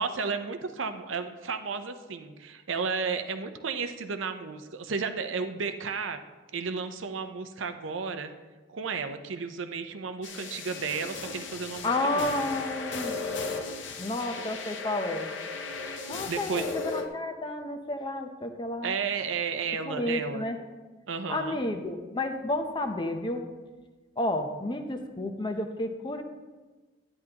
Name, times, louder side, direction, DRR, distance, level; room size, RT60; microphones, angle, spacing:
voice 1, 0.0-6.3 6.5-8.3 8.7-12.3 16.3-16.7 18.8-20.4 21.1-21.6, right 5 dB, 80° right, 8 dB, 0.6 m, -33 dB
sound 1, 10.2-17.1, left 4 dB, 70° left, 0.8 m, -36 dB
voice 2, 11.8-13.1 14.0-15.3 16.1-19.0 19.8-20.6 21.3-23.4 24.2-26.2, left 1 dB, 25° left, 6 dB, 0.6 m, -31 dB
10.5 x 9.7 x 2.9 m, 1.2 s
head